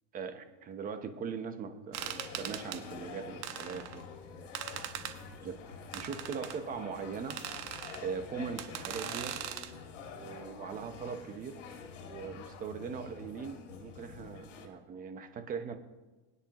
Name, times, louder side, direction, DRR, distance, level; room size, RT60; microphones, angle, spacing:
voice 1, 0.1-4.0 4.3-4.8 5.4-5.6 5.9-7.4 8.0-9.4 10.1-11.6 12.0-15.8, right 6 dB, 25° right, 8 dB, 0.9 m, -40 dB
sound 1, 1.9-2.8 3.4-4.0 4.5-5.2 5.9-6.6 7.3-8.0 8.6-9.7, right 11 dB, 80° right, 1.2 m, -40 dB
sound 2, 2.0-14.7, left 5 dB, 85° left, 2.2 m, -47 dB
22.5 x 9.7 x 3.0 m, 1.2 s
supercardioid pair, 150°, 36 cm